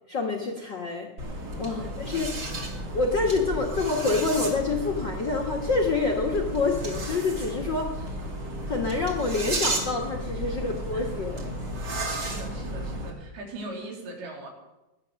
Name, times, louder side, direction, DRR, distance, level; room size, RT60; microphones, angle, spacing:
voice 1, 0.1-1.1 1.6-8.0 8.7-11.5, left 3 dB, 85° left, 3 dB, 1.0 m, -27 dB
sound 1, 1.2-13.1, right 1 dB, 30° right, 2.8 m, -33 dB
voice 2, 10.5-11.1 11.8-14.5, right 2 dB, 70° right, 0 dB, 5.1 m, -41 dB
21.0 x 9.9 x 6.5 m, 1.0 s
omnidirectional pair, 4.7 m